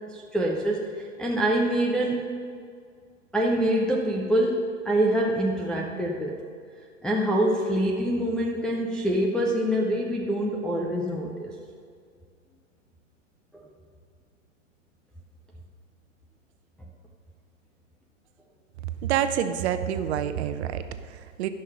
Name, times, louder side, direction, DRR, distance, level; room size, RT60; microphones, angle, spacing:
voice 1, 0.1-2.3 3.3-6.4 7.0-11.5 13.5-13.6, right 1 dB, ahead, -3 dB, 0.3 m, -25 dB
voice 2, 18.8-21.5, right 9 dB, 55° right, 10 dB, 0.8 m, -28 dB
13.5 x 5.9 x 6.5 m, 2.1 s
hypercardioid pair, 120°, 39 cm